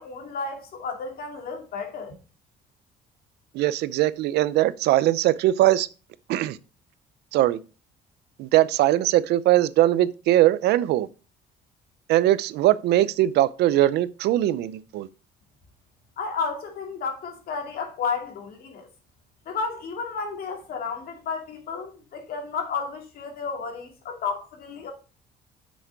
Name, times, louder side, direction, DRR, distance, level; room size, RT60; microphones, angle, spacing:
voice 1, 0.0-2.1 16.2-18.9 19.5-24.9, left 5 dB, 60° left, 2.6 m, -32 dB
voice 2, 3.5-5.9 6.3-6.6 7.3-7.6 8.4-11.1 12.1-15.1, right 14 dB, 80° right, 0.6 m, -21 dB
8.0 x 6.3 x 4.7 m
cardioid pair, 110°, 17 cm